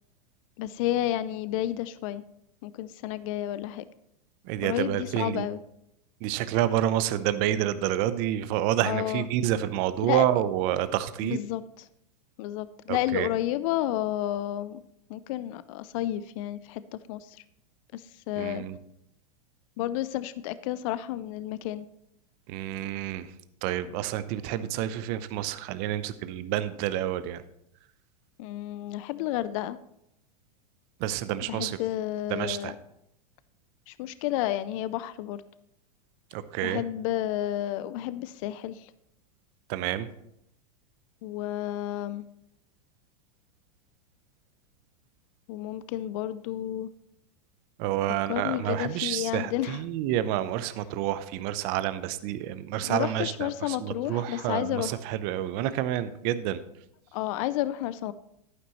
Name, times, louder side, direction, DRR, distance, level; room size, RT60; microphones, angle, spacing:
voice 1, 0.6-2.2 2.6-3.9 4.6-5.6 8.8-9.3 10.0-10.3 11.2-11.8 12.4-14.8 15.1-17.4 17.9-18.6 19.8-21.9 28.4-29.8 31.5-32.8 33.9-35.4 36.6-38.9 41.2-42.3 45.5-46.9 48.3-49.8 52.8-54.9 57.1-58.1, left 13 dB, 55° left, 15 dB, 0.5 m, -31 dB
voice 2, 4.5-5.5 6.2-11.4 12.9-13.3 18.4-18.8 22.5-23.3 23.6-27.4 31.0-31.8 32.3-32.7 36.3-36.8 39.7-40.1 47.8-56.6, right 12 dB, 50° right, 13 dB, 0.7 m, -29 dB
11.0 x 9.5 x 3.1 m, 0.78 s
hypercardioid pair, 110°, 20 cm